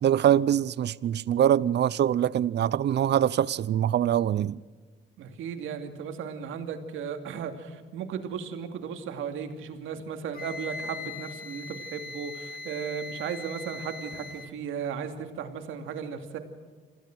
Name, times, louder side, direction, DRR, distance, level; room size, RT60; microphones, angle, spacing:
voice 1, 0.0-4.6, right 10 dB, 60° right, 0.7 m, -23 dB
voice 2, 5.2-16.4, right 7 dB, 85° right, 2.6 m, -36 dB
Wind instrument woodwind instrument, 10.3-14.5, left 2 dB, 50° left, 2.4 m, -40 dB
26.5 x 16.0 x 6.2 m
cardioid pair, 90°, 20 cm